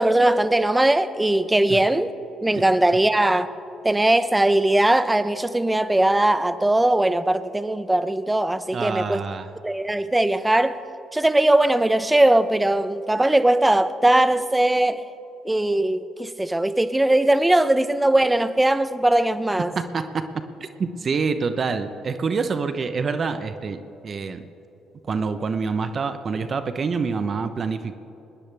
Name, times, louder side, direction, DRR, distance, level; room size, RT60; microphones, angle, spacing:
voice 1, 0.0-2.1 2.4-3.5 3.8-9.2 9.6-10.8 11.1-15.0 15.4-19.8, right 1 dB, 15° right, 13 dB, 0.8 m, -20 dB
voice 2, 8.7-9.5 19.9-20.4 20.8-24.4 25.1-27.9, right 5 dB, 45° right, 10 dB, 0.9 m, -26 dB
21.0 x 18.5 x 3.5 m, 2.9 s
supercardioid pair, 60°, 0 cm